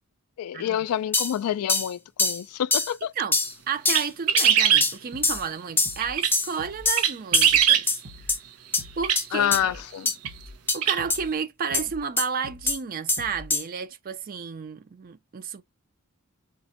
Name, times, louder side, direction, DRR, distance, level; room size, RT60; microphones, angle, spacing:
voice 1, 0.4-3.1 9.3-10.1, left 10 dB, 75° left, 0.3 m, -27 dB
sound 1, 1.1-1.3 1.7-1.9 2.2-2.4 2.7-2.9 3.3-3.5 3.9-4.1 4.4-4.5 4.8-4.9 5.2-5.4 5.8-6.0 6.3-6.5 6.9-7.1 7.3-7.5 7.9-8.0 8.3-8.4 8.7-8.8 9.2-9.3 9.5-9.6 10.1-10.2 10.7-10.8 11.1-11.2 11.7-11.8 12.2-12.3 12.7-12.8 13.1-13.2 13.5-13.6, left 3 dB, 10° left, 0.6 m, -23 dB
voice 2, 3.7-8.4 9.0-9.8 10.7-15.6, right 6 dB, 40° right, 0.4 m, -32 dB
sound 2, 3.9-4.9 6.0-6.3 7.0-7.8 9.0-9.2 10.2-10.3 10.8-11.0, right 9 dB, 90° right, 0.6 m, -20 dB
sound 3, 5.1-5.5 5.8-6.2 6.6-7.0 7.3-7.7 8.0-8.4 8.8-9.1 9.5-9.9 10.2-10.6 11.0-11.3 11.7-12.1 12.4-12.8 13.2-13.6, left 1 dB, 65° right, 0.9 m, -45 dB
3.8 x 2.1 x 2.7 m
head